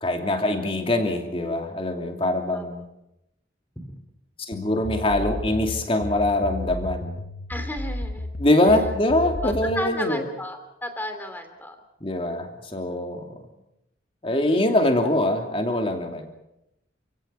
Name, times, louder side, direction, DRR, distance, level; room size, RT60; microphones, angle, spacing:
voice 1, 0.0-2.8 4.4-7.2 8.4-10.2 12.0-13.4 14.2-16.3, left 1 dB, 30° left, 4 dB, 2.8 m, -23 dB
sound 1, 4.5-9.9, left 1 dB, 50° left, 1.0 m, -33 dB
voice 2, 7.5-8.3 9.4-11.8, left 1 dB, 10° left, 7 dB, 3.0 m, -33 dB
28.5 x 17.0 x 6.8 m, 0.86 s
head